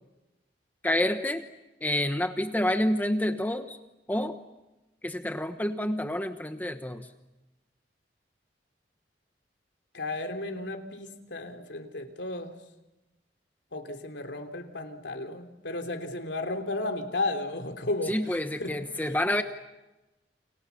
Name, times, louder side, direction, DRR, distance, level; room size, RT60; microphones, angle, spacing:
voice 1, 0.8-1.5 1.8-3.8 4.1-4.4 5.0-7.1 18.1-19.4, left 1 dB, 10° left, 1.1 m, -28 dB
voice 2, 9.9-12.5 13.7-18.7 19.0-19.2, left 2 dB, 90° left, 3.3 m, -34 dB
29.5 x 28.5 x 7.1 m
head